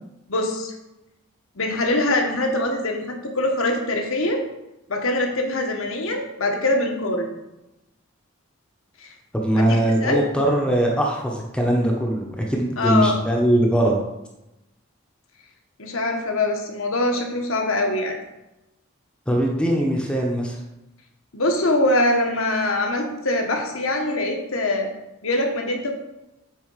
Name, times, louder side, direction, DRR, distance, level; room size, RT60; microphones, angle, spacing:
voice 1, 0.3-0.7 1.6-4.4 4.9-7.3 9.0-9.1 9.6-10.2 12.8-13.2 15.8-18.2 21.3-24.9 25.2-25.9, left 1 dB, 75° left, 2 dB, 1.4 m, -23 dB
voice 2, 9.3-14.0 19.3-20.6, right 1 dB, 5° left, -1 dB, 0.9 m, -21 dB
8.0 x 4.2 x 5.7 m, 0.94 s
head